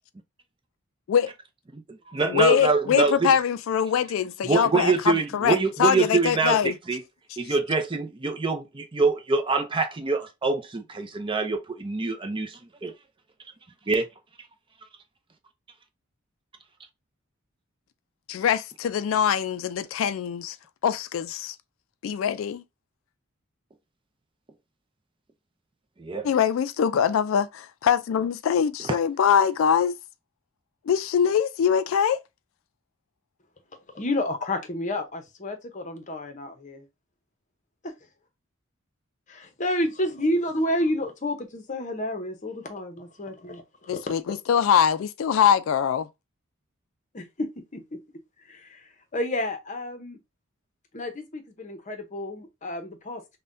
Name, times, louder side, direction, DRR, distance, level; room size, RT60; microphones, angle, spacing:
voice 1, 1.7-3.3 4.4-7.0 7.4-12.9 13.9-14.1 26.0-26.3, right 4 dB, 25° right, 0.5 m, -25 dB
voice 2, 2.2-6.7 7.4-7.5 18.3-20.6 20.8-21.6 22.0-22.6 26.2-30.0 30.9-32.2 43.9-46.1, left 8 dB, 70° left, 0.3 m, -23 dB
voice 3, 33.9-36.8 37.8-37.9 39.3-44.0 47.1-48.0 48.5-48.8 49.1-50.2 50.9-53.4, left 1 dB, 35° left, 0.8 m, -30 dB
5.4 x 2.2 x 2.6 m
head